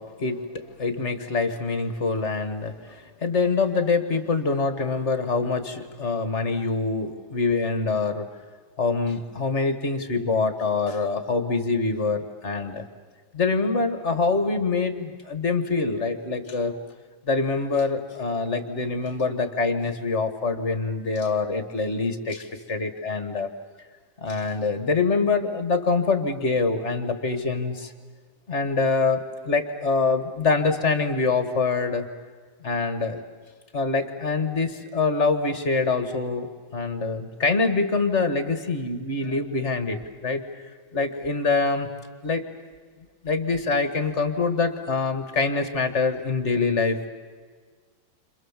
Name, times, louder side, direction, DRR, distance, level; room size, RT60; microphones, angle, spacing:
voice 1, 0.0-8.3 8.8-12.8 13.3-16.7 17.3-23.5 24.2-27.9 28.5-32.1 32.6-33.2 33.7-40.4 40.9-41.9 42.2-42.5 43.2-47.1, left 4 dB, 35° left, 9 dB, 1.7 m, -25 dB
29.5 x 26.5 x 7.4 m, 1.5 s
omnidirectional pair, 2.2 m